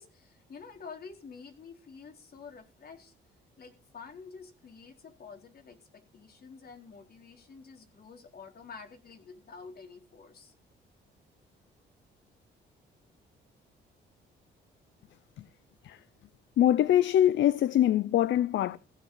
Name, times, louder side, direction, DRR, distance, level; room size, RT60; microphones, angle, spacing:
voice 1, 0.0-3.1 3.6-10.5, left 5 dB, 50° left, 4.0 m, -49 dB
voice 2, 16.6-18.8, left 11 dB, 70° left, 0.7 m, -24 dB
15.5 x 6.6 x 8.5 m
cardioid pair, 90°, 20 cm